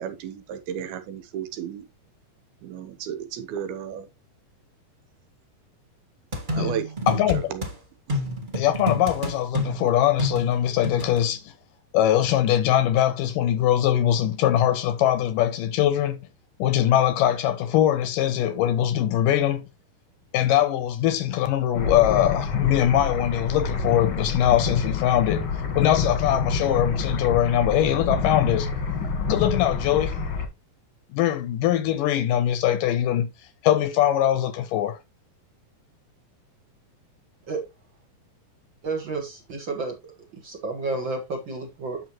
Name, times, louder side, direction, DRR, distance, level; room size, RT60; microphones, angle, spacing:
voice 1, 0.0-1.8 2.6-4.1 6.5-7.2 7.5-7.7, right 8 dB, 90° right, 3.1 m, -33 dB
sound 1, 6.3-7.7 8.1-11.2, left 1 dB, 25° right, 1.1 m, -29 dB
voice 2, 7.1-7.5 8.5-11.5 11.9-16.2 16.6-19.6 20.3-25.4 25.8-28.7 29.3-30.2 31.1-33.3 33.6-35.0, left 11 dB, 80° left, 2.1 m, -22 dB
sound 2, 21.7-30.5, left 4 dB, 50° left, 1.6 m, -27 dB
voice 3, 38.8-40.1 40.4-42.0, right 3 dB, 55° right, 1.4 m, -31 dB
9.2 x 6.3 x 3.0 m
omnidirectional pair, 4.3 m